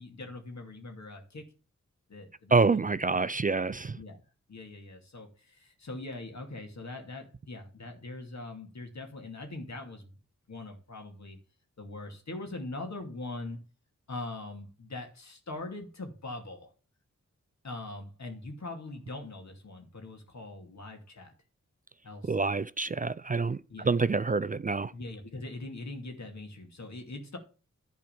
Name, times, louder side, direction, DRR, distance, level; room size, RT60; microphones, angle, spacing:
voice 1, 0.0-1.4 2.1-2.8 4.0-4.2 4.5-10.1 10.5-11.4 11.8-13.6 14.1-16.7 17.6-21.3 22.0-22.4 23.7-23.9 24.9-27.4, left 2 dB, 65° left, 2.5 m, -42 dB
voice 2, 2.5-4.0 22.2-24.9, right 4 dB, 30° right, 0.4 m, -27 dB
11.0 x 4.6 x 7.0 m
cardioid pair, 50°, 30 cm